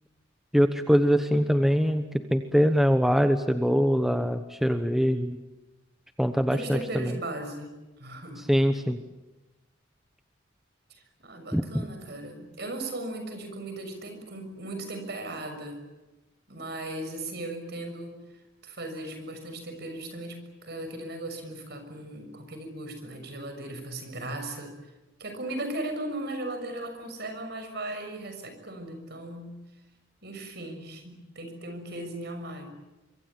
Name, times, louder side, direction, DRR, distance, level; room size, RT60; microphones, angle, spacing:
voice 1, 0.5-5.4 6.2-7.1 8.5-9.0 11.5-11.8, equal, ahead, 7 dB, 1.0 m, -23 dB
voice 2, 6.5-8.4 10.9-15.8 16.5-24.7 25.2-29.6 30.2-32.7, right 1 dB, 55° right, 7 dB, 6.4 m, -37 dB
25.0 x 24.5 x 8.8 m, 1.1 s
head